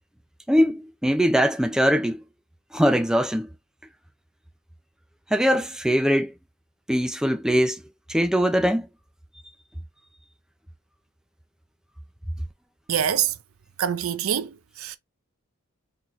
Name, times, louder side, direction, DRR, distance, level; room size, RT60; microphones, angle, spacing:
voice 1, 0.5-2.2 2.7-3.5 5.3-6.3 6.9-7.8 8.1-8.9, equal, 5° right, 0.4 m, -21 dB
voice 2, 12.9-13.3 13.8-15.0, right 9 dB, 90° right, 0.5 m, -25 dB
4.4 x 2.8 x 3.0 m
head